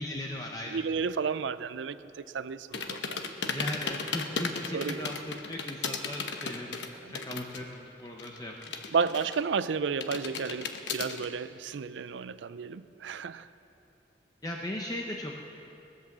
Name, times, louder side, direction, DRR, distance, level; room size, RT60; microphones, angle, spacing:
voice 1, 0.0-0.8 3.5-8.8 14.4-15.3, left 1 dB, 20° left, 0.8 m, -38 dB
voice 2, 0.6-3.2 4.7-5.1 7.0-7.1 8.9-13.5, right 5 dB, 85° right, 0.4 m, -32 dB
sound 1, 2.7-7.7 8.0-9.6 10.0-11.2, left 5 dB, 85° left, 0.9 m, -35 dB
19.0 x 8.3 x 7.2 m
head